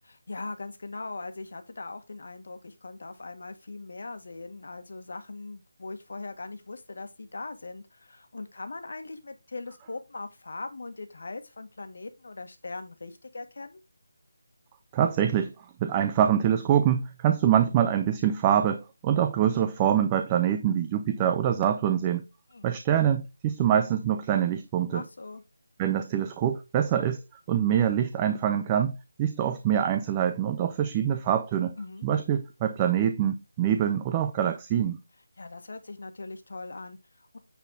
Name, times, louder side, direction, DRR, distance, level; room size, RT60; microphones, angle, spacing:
voice 1, 0.1-13.8 22.5-22.7 24.9-25.4 31.8-32.0 35.4-37.4, left 3 dB, 60° left, 1.5 m, -40 dB
voice 2, 14.9-15.5 15.8-22.3 22.6-25.0 25.8-27.2 27.5-31.7 32.0-35.0, right 9 dB, 15° right, 0.4 m, -25 dB
9.3 x 4.1 x 3.7 m
figure-of-eight pair, 170°, 0 cm